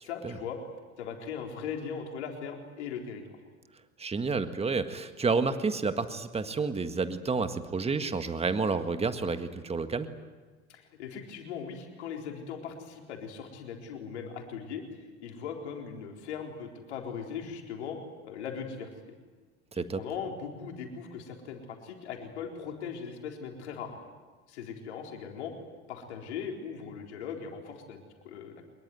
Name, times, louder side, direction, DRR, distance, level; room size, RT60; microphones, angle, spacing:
voice 1, 0.0-0.6 1.0-3.4 10.7-18.0 18.2-19.2 19.8-23.9 24.5-25.5 25.9-28.7, left 6 dB, 75° left, 2 dB, 4.1 m, -39 dB
voice 2, 4.0-10.2 19.7-20.0, right 4 dB, 20° right, 10 dB, 1.7 m, -30 dB
24.5 x 22.0 x 9.3 m, 1.4 s
hypercardioid pair, 75°, 34 cm